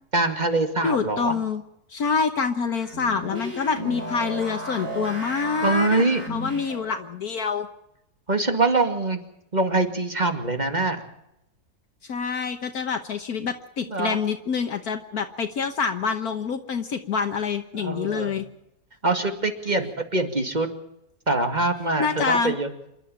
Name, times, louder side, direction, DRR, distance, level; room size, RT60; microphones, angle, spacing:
voice 1, 0.1-1.4 3.3-3.9 5.6-6.2 8.3-9.2 9.5-11.0 13.9-14.2 17.7-18.4 19.0-20.7 21.3-22.7, right 2 dB, 25° right, 6 dB, 2.4 m, -24 dB
voice 2, 0.8-1.6 1.9-6.0 6.3-7.7 12.1-18.5 19.8-19.9 22.0-22.6, left 5 dB, 65° left, 6 dB, 1.6 m, -26 dB
sound 1, 2.6-7.1, equal, 60° right, 7.3 m, -35 dB
28.0 x 12.0 x 8.9 m, 0.82 s
omnidirectional pair, 1.7 m